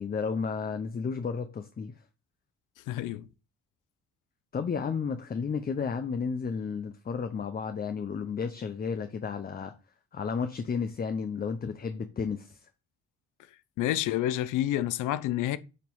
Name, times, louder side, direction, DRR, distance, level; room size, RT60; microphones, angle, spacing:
voice 1, 0.0-2.0 4.5-9.7 10.1-12.6, left 5 dB, 30° left, 0.7 m, -32 dB
voice 2, 2.9-3.3 13.8-15.6, left 13 dB, 85° left, 0.6 m, -28 dB
7.6 x 3.0 x 5.5 m
cardioid pair, 90°, 30 cm